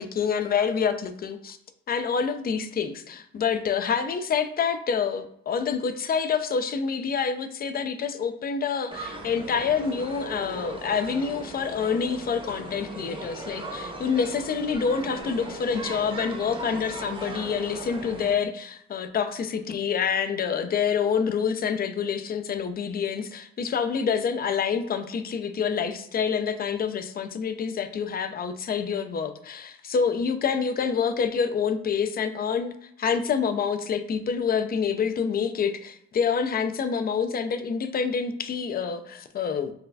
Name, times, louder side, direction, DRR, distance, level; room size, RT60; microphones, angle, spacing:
voice 1, 0.0-1.6 1.9-39.7, left 6 dB, 30° left, 9 dB, 0.4 m, -27 dB
sound 1, 8.9-18.3, right 2 dB, 15° right, 0.8 m, -38 dB
4.0 x 2.2 x 2.7 m, 0.71 s
cardioid pair, 90°, 30 cm